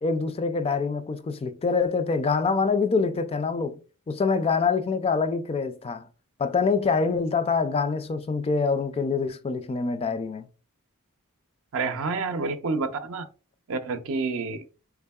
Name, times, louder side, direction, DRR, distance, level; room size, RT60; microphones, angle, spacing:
voice 1, 0.0-3.8 4.1-6.1 6.4-10.5, left 4 dB, 25° left, 0.3 m, -25 dB
voice 2, 11.7-13.3 13.7-14.7, right 4 dB, 65° right, 0.5 m, -28 dB
3.5 x 3.4 x 2.2 m
head